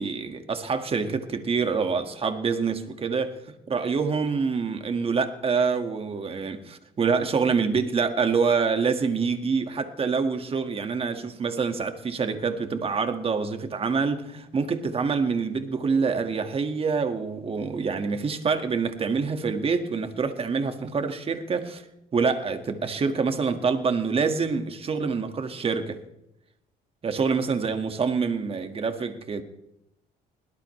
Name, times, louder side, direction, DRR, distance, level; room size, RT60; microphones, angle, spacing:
voice 1, 0.0-3.4 3.7-21.8 22.1-26.0 27.0-29.4, right 5 dB, 35° right, 1.9 m, -26 dB
22.0 x 17.5 x 3.3 m
cardioid pair, 110°, 17 cm